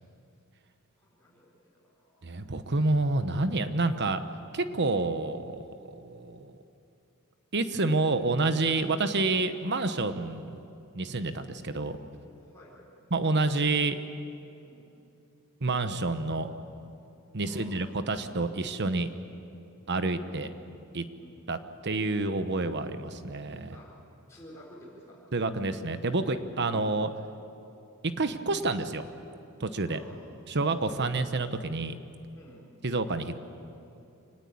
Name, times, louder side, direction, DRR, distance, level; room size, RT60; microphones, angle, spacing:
voice 1, 1.0-1.5 2.0-2.3 12.4-12.9 14.6-14.9 17.4-17.8 21.2-21.4 23.7-24.0 24.3-25.2 26.6-27.0 29.8-30.8 32.3-32.7, equal, 15° left, -7 dB, 4.4 m, -52 dB
voice 2, 2.2-4.2 4.5-6.5 7.5-10.6 10.9-12.0 13.1-14.0 15.6-16.5 17.3-19.1 19.9-20.5 20.9-21.0 21.5-21.6 21.8-23.8 25.3-27.1 28.2-29.1 29.6-30.0 30.5-32.0 32.8-33.4, right 3 dB, 50° right, 10 dB, 1.1 m, -28 dB
25.0 x 19.0 x 8.7 m, 2.7 s
head